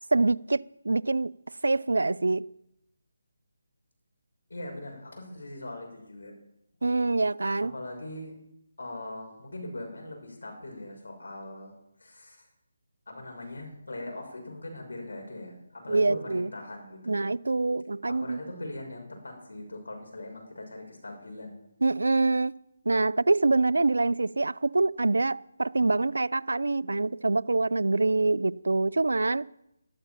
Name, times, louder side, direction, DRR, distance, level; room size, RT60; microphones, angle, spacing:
voice 1, 0.1-1.3 1.6-2.5 6.8-7.7 15.9-16.5 17.1-18.4 21.8-22.6 22.9-29.4, right 3 dB, 80° right, 0.4 m, -25 dB
voice 2, 4.5-6.3 7.7-8.4 8.8-11.7 12.0-12.5 13.1-17.2 18.0-21.6, left 1 dB, 75° left, 6.3 m, -41 dB
13.5 x 12.5 x 5.9 m
figure-of-eight pair, 155°, 0 cm